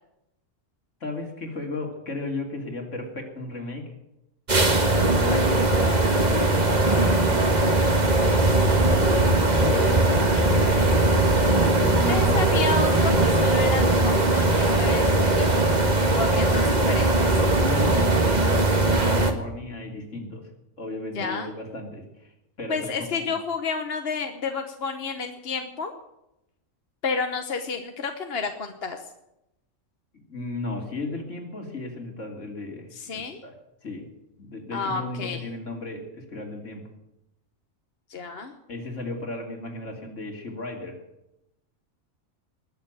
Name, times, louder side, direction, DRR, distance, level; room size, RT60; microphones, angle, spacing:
voice 1, 1.0-3.9 5.0-7.1 9.4-10.1 10.3-11.1 11.6-12.6 17.6-20.5 20.8-22.3 22.6-23.3 30.1-33.5 33.8-34.0 34.4-36.9 38.7-41.0, left 2 dB, 70° left, 2 dB, 3.3 m, -35 dB
sound 1, 4.5-19.3, right 2 dB, 35° right, 1.8 m, -20 dB
voice 2, 12.1-15.5 16.1-17.3 21.1-21.5 22.7-25.9 27.0-29.0 32.9-33.4 34.7-35.4 38.1-38.5, left 4 dB, 50° left, 5 dB, 1.3 m, -30 dB
20.5 x 7.2 x 9.1 m, 0.88 s
omnidirectional pair, 1.3 m